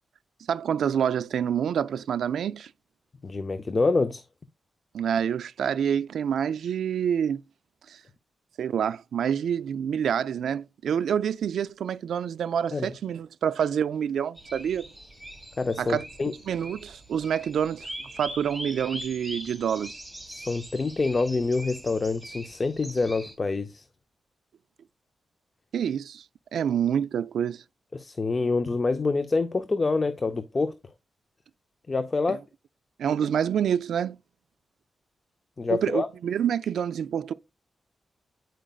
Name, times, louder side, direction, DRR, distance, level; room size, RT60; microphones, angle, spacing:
voice 1, 0.5-2.7 4.9-7.4 7.9-8.0 8.6-14.9 15.8-16.0 16.5-17.9 18.2-20.0 25.7-26.2 26.5-27.6 32.3-32.4 33.0-34.2 35.7-37.3, right 8 dB, 90° right, 0.3 m, -27 dB
voice 2, 3.2-4.2 12.7-12.9 15.6-16.3 20.3-23.9 27.9-30.7 31.9-32.4 35.6-36.1, left 3 dB, 35° left, 0.5 m, -26 dB
sound 1, 14.4-23.3, right 1 dB, 10° right, 1.6 m, -42 dB
9.0 x 5.1 x 2.3 m
cardioid pair, 100°, 0 cm